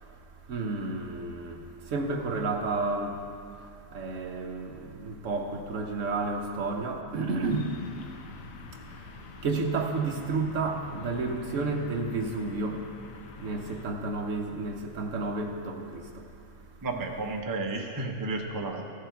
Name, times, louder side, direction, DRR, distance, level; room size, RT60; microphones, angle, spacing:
voice 1, 0.5-1.6 1.9-3.2 3.9-7.7 9.4-12.9 13.4-16.2, right 3 dB, 60° right, 2 dB, 1.2 m, -31 dB
sound 1, 7.4-13.9, left 5 dB, 70° left, 1.1 m, -46 dB
voice 2, 16.8-18.8, right 3 dB, 20° right, 1 dB, 0.5 m, -32 dB
15.0 x 6.7 x 4.6 m, 2.5 s
omnidirectional pair, 1.5 m